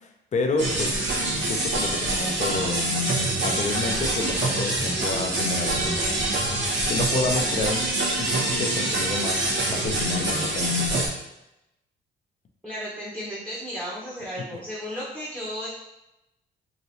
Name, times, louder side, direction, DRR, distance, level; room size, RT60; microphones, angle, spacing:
voice 1, 0.3-1.0 1.5-2.8 3.4-6.2 6.9-7.8 8.2-8.3 8.6-11.1, left 3 dB, 35° left, 5 dB, 0.5 m, -29 dB
sound 1, 0.6-11.1, right 1 dB, 65° right, 0.9 m, -25 dB
voice 2, 12.6-15.7, equal, 10° right, -8 dB, 0.9 m, -34 dB
3.1 x 2.5 x 2.7 m, 0.90 s
cardioid pair, 90°, 20 cm